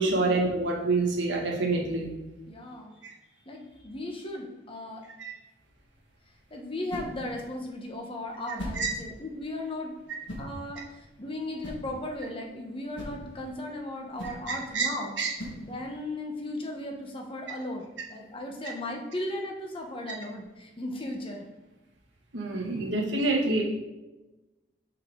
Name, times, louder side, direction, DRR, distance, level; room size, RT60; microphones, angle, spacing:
voice 1, 0.0-2.1 3.0-3.1 5.2-5.3 8.8-8.9 14.7-14.9 15.2-15.3 22.3-23.6, right 3 dB, 80° right, -1 dB, 1.7 m, -26 dB
voice 2, 2.5-2.9 3.4-5.0 6.5-10.0 10.4-15.2 15.6-21.5, left 1 dB, 30° left, 1 dB, 1.1 m, -36 dB
sound 1, 5.6-16.1, equal, 90° left, 1.6 m, -43 dB
6.6 x 5.6 x 3.8 m, 1.0 s
head